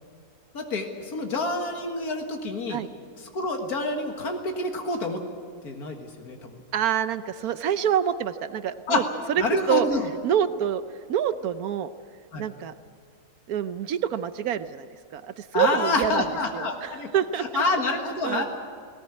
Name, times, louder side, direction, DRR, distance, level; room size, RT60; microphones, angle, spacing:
voice 1, 0.5-2.8 3.3-5.2 5.6-6.5 8.9-9.0 9.4-10.1 12.3-12.4 15.5-17.1 17.4-18.4, left 3 dB, 90° left, 3 dB, 2.2 m, -27 dB
voice 2, 6.7-9.0 9.3-9.9 10.2-10.8 11.1-11.9 12.4-12.7 13.5-17.6 18.2-18.4, right 9 dB, 80° right, 12 dB, 1.2 m, -27 dB
19.0 x 18.0 x 9.7 m, 2.3 s
omnidirectional pair, 1.6 m